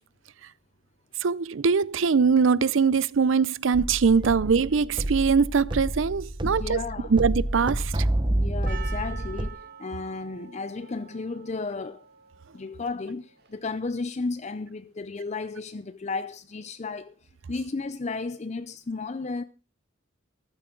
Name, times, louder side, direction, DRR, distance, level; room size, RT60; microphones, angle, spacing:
voice 1, 1.2-6.8 7.1-7.9, right 5 dB, 70° right, 0.5 m, -22 dB
sound 1, 3.7-9.5, right 1 dB, 25° right, 0.8 m, -29 dB
voice 2, 6.4-7.1 8.2-12.0 12.5-17.2 17.5-19.4, left 3 dB, 35° left, 0.5 m, -33 dB
Percussion, 8.7-13.9, right 8 dB, 50° right, 2.1 m, -46 dB
14.5 x 12.5 x 3.8 m
head